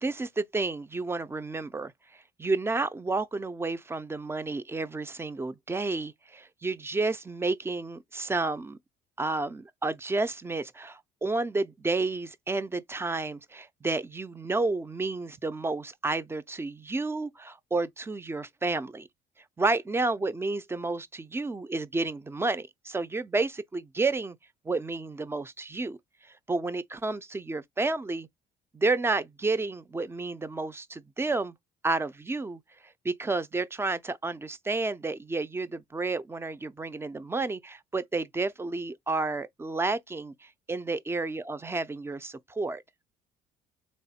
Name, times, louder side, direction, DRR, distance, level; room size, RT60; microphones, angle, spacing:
voice 1, 0.0-1.9 2.4-8.8 9.2-19.1 19.6-24.4 24.7-26.0 26.5-28.3 28.7-31.6 31.8-32.6 33.0-42.8, right 3 dB, 15° right, 0.3 m, -31 dB
3.4 x 2.1 x 4.1 m
cardioid pair, 110°, 17 cm